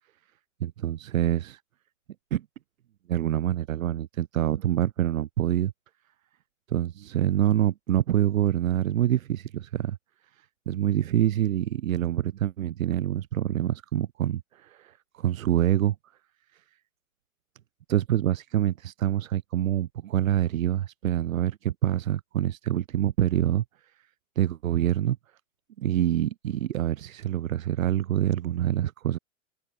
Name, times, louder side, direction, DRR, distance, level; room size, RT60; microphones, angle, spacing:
voice 1, 0.6-1.6 2.3-2.4 3.1-5.7 6.7-10.0 10.7-15.9 17.9-23.6 24.3-25.2 25.8-29.2, right 12 dB, 85° right, 1.5 m, -26 dB
open air
supercardioid pair, 160°, 40 cm